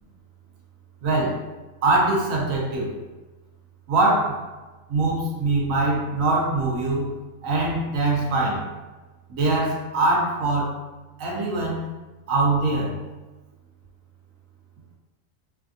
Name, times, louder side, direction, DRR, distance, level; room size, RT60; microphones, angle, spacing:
voice 1, 1.0-1.5 1.8-2.9 3.9-4.5 4.9-7.1 7.4-8.7 9.3-10.8 11.2-11.9 12.3-13.0, right 2 dB, 85° right, -2 dB, 1.1 m, -23 dB
3.3 x 2.3 x 2.5 m, 1.2 s
omnidirectional pair, 1.4 m